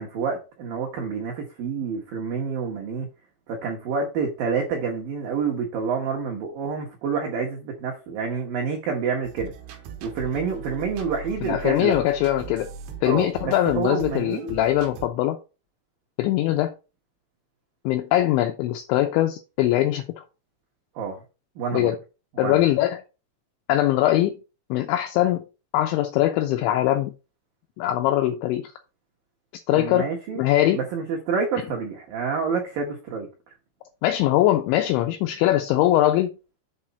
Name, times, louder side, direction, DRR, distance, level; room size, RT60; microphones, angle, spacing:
voice 1, 0.0-3.1 3.5-9.5 10.0-11.9 13.1-14.5 21.0-21.2 21.6-21.9 22.4-22.6 29.7-30.4 30.7-33.3, right 5 dB, 90° right, 1.9 m, -28 dB
sound 1, 9.2-15.1, right 6 dB, 75° right, 2.5 m, -39 dB
voice 2, 11.4-12.7 13.0-15.4 16.2-16.7 17.9-20.0 21.7-22.0 22.4-23.0 23.7-24.4 24.7-25.5 25.7-27.1 27.8-28.7 29.7-30.8 34.0-36.4, left 14 dB, 85° left, 2.6 m, -22 dB
7.6 x 4.1 x 5.6 m
omnidirectional pair, 6.0 m